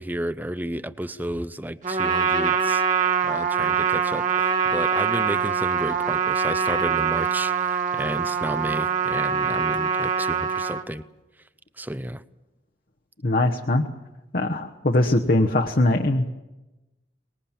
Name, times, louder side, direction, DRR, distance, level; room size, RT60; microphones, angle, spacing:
voice 1, 0.0-2.8 3.2-11.0 11.8-12.2, right 1 dB, 10° right, 14 dB, 0.7 m, -32 dB
Trumpet, 1.8-10.8, right 6 dB, 45° right, 1.8 m, -24 dB
voice 2, 13.2-13.9 14.3-16.3, left 1 dB, 55° left, 2 dB, 1.1 m, -21 dB
24.5 x 20.5 x 7.3 m, 1.1 s
head